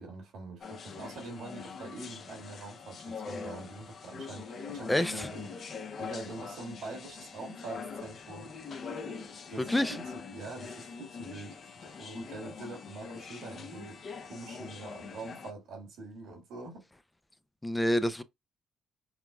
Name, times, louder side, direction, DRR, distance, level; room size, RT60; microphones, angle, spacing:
voice 1, 0.0-8.5 9.5-16.9, right 3 dB, 85° right, 1.8 m, -44 dB
sound 1, 0.6-15.5, left 5 dB, 55° left, 0.8 m, -43 dB
voice 2, 4.9-5.3 9.6-10.0 17.6-18.2, left 1 dB, 10° left, 0.4 m, -28 dB
5.8 x 2.2 x 2.3 m
cardioid pair, 90°, 0 cm